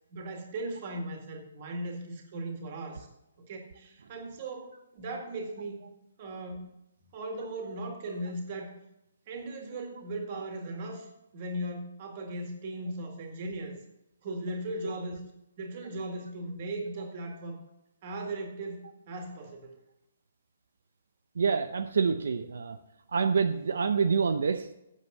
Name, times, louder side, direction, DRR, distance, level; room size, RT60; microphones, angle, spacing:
voice 1, 0.1-3.1 3.4-5.8 6.2-6.7 7.1-8.8 9.3-11.1 11.3-13.8 14.2-15.2 15.6-17.6 18.0-19.8, right 1 dB, 30° right, 3 dB, 2.0 m, -38 dB
voice 2, 21.4-22.8 23.1-24.8, right 5 dB, 75° right, 7 dB, 0.7 m, -27 dB
8.3 x 7.6 x 6.8 m, 0.86 s
hypercardioid pair, 175°, 0 cm